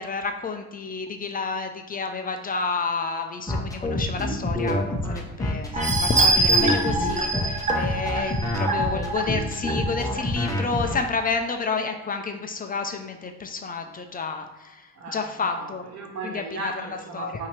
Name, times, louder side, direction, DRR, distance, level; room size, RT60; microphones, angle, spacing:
voice 1, 0.0-14.5 15.1-15.8 16.2-16.7 17.1-17.3, left 4 dB, 30° left, 5 dB, 0.5 m, -30 dB
sound 1, 3.5-11.0, left 1 dB, 10° left, 0.9 m, -27 dB
sound 2, 5.7-10.2 10.7-10.8 11.2-11.3, right 2 dB, 25° right, 0.8 m, -24 dB
voice 2, 14.9-17.5, right 3 dB, 65° right, 1 dB, 1.3 m, -36 dB
5.5 x 2.9 x 3.2 m, 1.1 s
cardioid pair, 90°, 29 cm